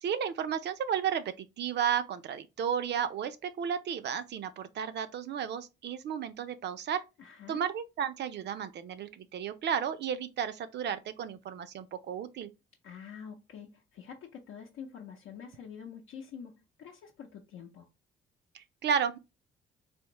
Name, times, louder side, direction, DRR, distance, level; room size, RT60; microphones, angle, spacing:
voice 1, 0.0-7.0 7.5-12.5 18.5-19.2, right 8 dB, 60° right, 0.5 m, -33 dB
voice 2, 7.2-7.6 12.8-17.9, left 7 dB, 75° left, 0.6 m, -46 dB
3.5 x 2.6 x 2.9 m
cardioid pair, 90°, 20 cm